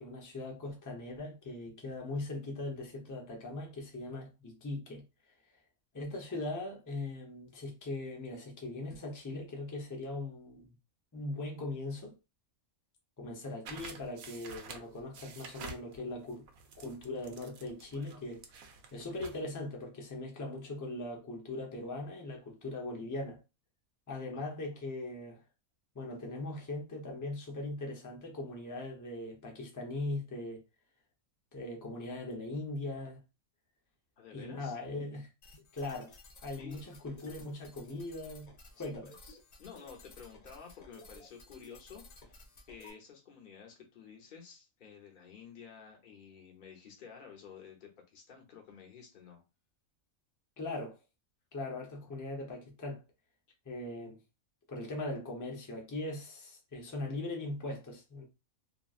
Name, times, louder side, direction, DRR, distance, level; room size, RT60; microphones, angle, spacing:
voice 1, 0.0-5.0 5.9-10.7 11.1-12.2 13.2-16.4 16.8-18.4 18.9-23.4 24.1-25.4 25.9-30.6 31.5-33.2 34.3-35.3 35.7-36.1 36.4-38.5 38.8-39.1 50.6-51.0 51.5-53.0 53.7-54.2 54.7-58.2, left 2 dB, 20° left, 0.5 m, -40 dB
sound 1, 13.7-19.4, right 4 dB, 80° right, 1.0 m, -49 dB
voice 2, 24.3-24.8 34.2-34.8 36.6-36.9 38.7-42.4 42.7-49.4, left 7 dB, 45° left, 0.8 m, -52 dB
sound 2, 35.4-42.9, left 2 dB, 85° left, 0.3 m, -55 dB
3.0 x 2.5 x 2.4 m
omnidirectional pair, 1.5 m